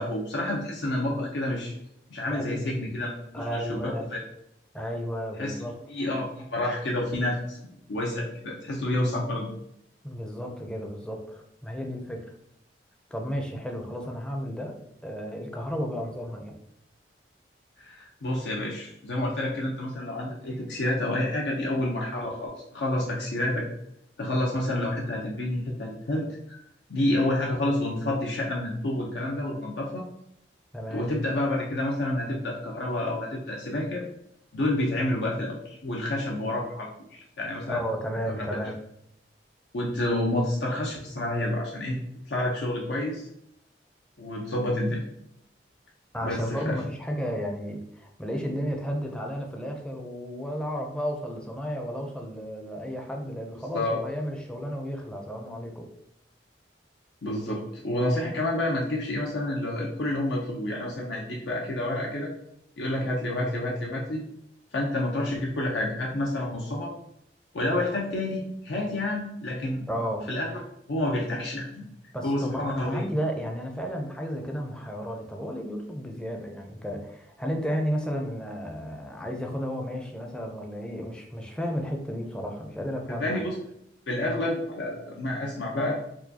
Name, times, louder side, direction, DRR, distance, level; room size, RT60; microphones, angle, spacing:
voice 1, 0.0-1.7 2.1-3.1 3.4-4.2 5.4-9.5 17.8-23.7 24.2-26.6 26.9-30.0 30.9-34.0 34.5-37.8 38.3-38.5 39.7-42.0 42.3-43.3 44.2-45.0 46.2-46.7 53.7-54.0 57.2-62.3 62.8-64.2 64.7-66.9 67.5-69.9 70.3-70.6 70.9-71.8 72.2-73.0 83.2-83.5 84.1-86.0, left 1 dB, 80° left, -2 dB, 0.6 m, -29 dB
voice 2, 2.3-2.9 3.3-4.2 4.7-5.7 10.0-12.2 13.1-14.8 15.0-16.5 30.7-31.1 37.7-38.7 46.1-55.9 69.9-70.3 72.1-83.4, equal, 5° left, 2 dB, 0.4 m, -33 dB
4.5 x 2.3 x 2.7 m, 0.75 s
head